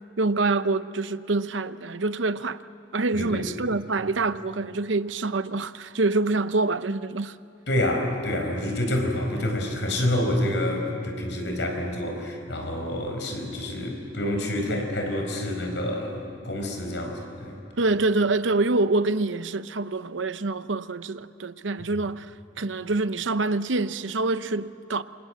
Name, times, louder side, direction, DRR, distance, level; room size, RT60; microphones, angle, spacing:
voice 1, 0.2-2.6 2.9-7.4 14.7-14.8 17.8-22.3 22.6-25.0, right 3 dB, 90° right, 0.8 m, -26 dB
voice 2, 3.1-3.5 7.7-17.6, left 1 dB, 70° left, 5.2 m, -28 dB
27.5 x 26.5 x 7.8 m
head